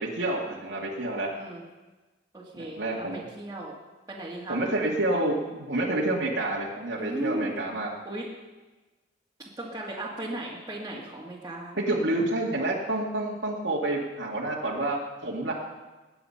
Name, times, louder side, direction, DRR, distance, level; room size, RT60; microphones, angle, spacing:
voice 1, 0.0-1.3 2.6-3.2 4.5-7.9 11.8-15.5, right 2 dB, 85° right, -4 dB, 2.1 m, -28 dB
voice 2, 2.3-3.7 4.1-4.6 7.0-7.5 8.1-8.3 9.6-11.8, right 1 dB, 20° right, -7 dB, 2.0 m, -36 dB
20.5 x 9.3 x 5.8 m, 1.2 s
head